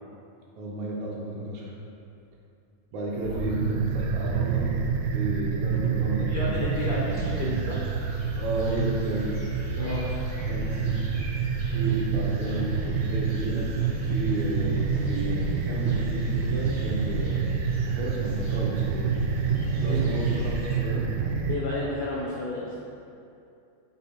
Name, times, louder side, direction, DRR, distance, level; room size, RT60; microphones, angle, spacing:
voice 1, 0.6-1.7 2.9-4.7 5.1-6.5 6.8-7.7 8.3-9.4 10.4-10.8 11.7-13.7 14.1-17.4 17.8-19.1 19.8-21.0, right 2 dB, 70° right, -4 dB, 1.9 m, -32 dB
sound 1, 3.2-21.6, right 5 dB, 90° right, 2.2 m, -27 dB
voice 2, 6.3-7.0 7.4-7.8 9.8-10.1 19.9-20.0 21.5-22.7, left 2 dB, 85° left, -6 dB, 1.2 m, -32 dB
sound 2, 6.7-20.8, right 1 dB, 45° right, 0.7 m, -50 dB
6.8 x 4.1 x 4.2 m, 2.6 s
omnidirectional pair, 3.7 m